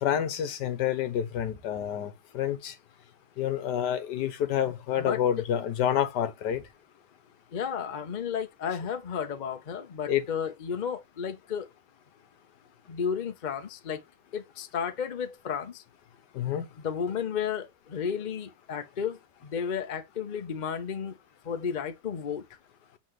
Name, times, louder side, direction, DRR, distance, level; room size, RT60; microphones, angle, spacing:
voice 1, 0.0-2.7 3.4-6.6 10.1-10.3 16.3-16.7, left 10 dB, 70° left, 1.4 m, -28 dB
voice 2, 5.0-5.4 7.5-11.7 12.9-14.0 14.3-15.8 16.8-21.2 21.4-22.4, left 7 dB, 45° left, 0.5 m, -33 dB
7.8 x 3.8 x 3.2 m
omnidirectional pair, 1.9 m